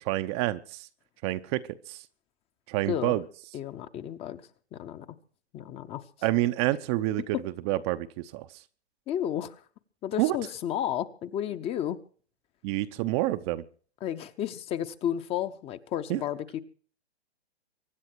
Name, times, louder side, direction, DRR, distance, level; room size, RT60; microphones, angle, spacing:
voice 1, 0.0-0.9 1.2-2.0 2.7-3.2 6.2-7.4 7.7-8.5 10.2-10.4 12.6-13.6 16.1-16.2, right 16 dB, 25° right, 10 dB, 0.7 m, -28 dB
voice 2, 2.9-3.2 3.5-5.1 5.5-6.0 9.1-9.6 10.0-12.0 14.0-16.6, left 10 dB, 20° left, 12 dB, 0.9 m, -32 dB
24.5 x 10.0 x 4.6 m, 0.43 s
hypercardioid pair, 135°, 33 cm